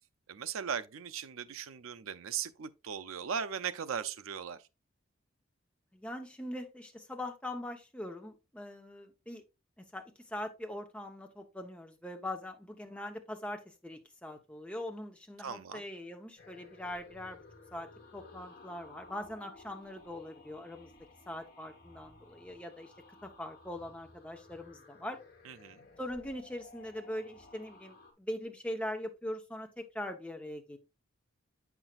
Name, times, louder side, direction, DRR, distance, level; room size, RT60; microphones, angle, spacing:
voice 1, 0.3-4.6 15.4-15.8 25.4-25.8, right 7 dB, 85° right, 0.5 m, -38 dB
voice 2, 5.9-9.4 9.9-17.4 17.7-20.9 21.3-22.9 23.2-25.2 26.0-30.8, left 1 dB, 5° left, 0.8 m, -42 dB
sound 1, 16.4-28.1, left 3 dB, 45° left, 1.5 m, -56 dB
7.8 x 6.0 x 2.4 m
head